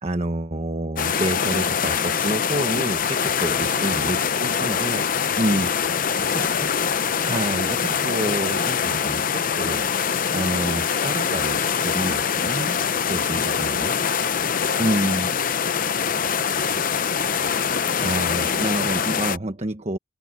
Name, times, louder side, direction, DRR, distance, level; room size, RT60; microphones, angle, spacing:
voice 1, 0.0-5.1 5.4-5.7 6.1-6.7 7.2-9.8 10.3-13.9 14.8-15.3 17.9-20.0, right 1 dB, 35° right, 1.2 m, -28 dB
sound 1, 1.0-19.4, left 7 dB, 45° left, 0.7 m, -24 dB
voice 2, 3.4-4.2 5.5-6.4 14.2-16.9, right 2 dB, 80° right, 5.3 m, -46 dB
Violin to Mosquito Sound Transformation, 13.8-18.7, left 2 dB, 75° left, 7.2 m, -46 dB
head